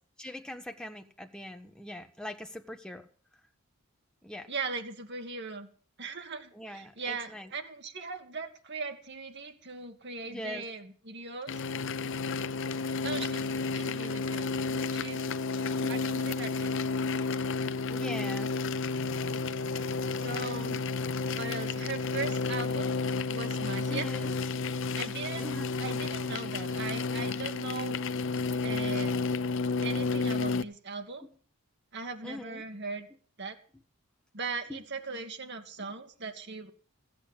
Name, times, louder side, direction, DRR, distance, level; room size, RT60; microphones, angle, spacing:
voice 1, 0.2-3.1 4.2-4.5 6.5-7.5 10.3-10.6 17.9-18.5 23.9-24.4 25.4-25.7 31.2-31.3 32.2-32.6 34.7-34.8, left 1 dB, 5° left, 5 dB, 1.2 m, -42 dB
voice 2, 4.5-5.7 6.0-11.5 13.0-13.5 13.7-14.5 14.9-15.2 15.9-16.7 20.2-20.8 21.3-23.0 23.3-24.1 24.9-28.0 28.5-29.3 29.8-31.2 31.9-33.1 33.4-33.6 34.3-36.7, right 4 dB, 50° right, 6 dB, 1.9 m, -39 dB
sound 1, 11.5-30.6, left 4 dB, 55° left, 0.6 m, -31 dB
15.0 x 8.8 x 7.2 m, 0.43 s
head